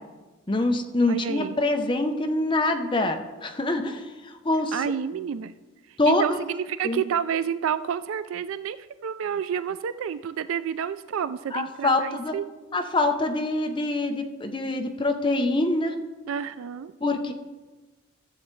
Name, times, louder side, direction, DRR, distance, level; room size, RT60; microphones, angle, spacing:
voice 1, 0.5-4.8 6.0-6.5 6.8-7.0 11.5-12.4 12.7-16.0 17.0-17.3, left 2 dB, 25° left, 5 dB, 0.6 m, -25 dB
voice 2, 1.1-1.6 4.7-5.5 6.1-8.8 9.0-12.4 16.3-16.9, right 8 dB, 75° right, 13 dB, 0.3 m, -29 dB
14.0 x 7.7 x 3.2 m, 1.2 s
head